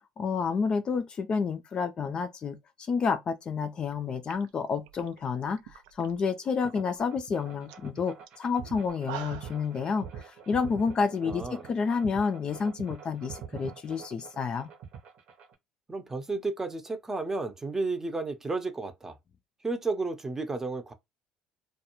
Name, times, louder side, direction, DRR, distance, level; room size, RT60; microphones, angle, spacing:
voice 1, 0.2-14.7, left 5 dB, 40° left, 0.4 m, -30 dB
sound 1, 3.9-4.0 4.2-6.2 6.5-7.0 7.3-7.4 7.7-7.9 8.3-8.4 8.8-9.6, right 13 dB, 80° right, 0.3 m, -44 dB
sound 2, 6.6-15.5, right 7 dB, 60° right, 0.8 m, -44 dB
voice 2, 11.2-11.7 15.9-19.1 19.6-20.9, right 3 dB, 20° right, 0.7 m, -32 dB
2.3 x 2.3 x 2.9 m
hypercardioid pair, 70°, 2 cm